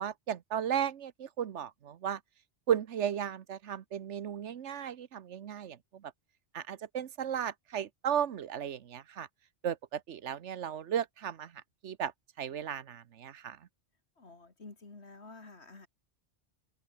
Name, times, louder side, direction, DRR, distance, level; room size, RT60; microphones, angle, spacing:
voice 1, 0.0-2.2 2.7-6.1 6.5-9.3 9.6-12.1 12.4-13.6, right 9 dB, 80° right, 1.2 m, -35 dB
voice 2, 14.2-15.9, left 3 dB, 70° left, 3.2 m, -50 dB
open air
omnidirectional pair, 1.2 m